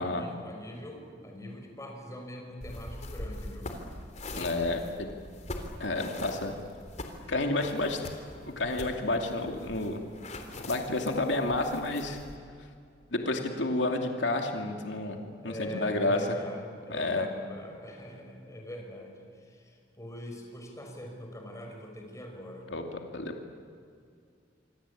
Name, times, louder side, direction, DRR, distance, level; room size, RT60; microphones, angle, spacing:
voice 1, 0.0-3.7 7.6-7.9 15.4-22.7, equal, 20° left, 2 dB, 5.9 m, -43 dB
sound 1, 2.6-12.4, left 2 dB, 40° left, 3.4 m, -42 dB
voice 2, 4.3-5.1 5.8-6.5 7.3-8.0 8.6-10.0 10.7-12.2 13.1-15.2 15.4-16.2 16.9-17.3 22.7-23.3, left 2 dB, 85° left, 3 dB, 2.6 m, -30 dB
27.0 x 25.0 x 8.6 m, 2.3 s
head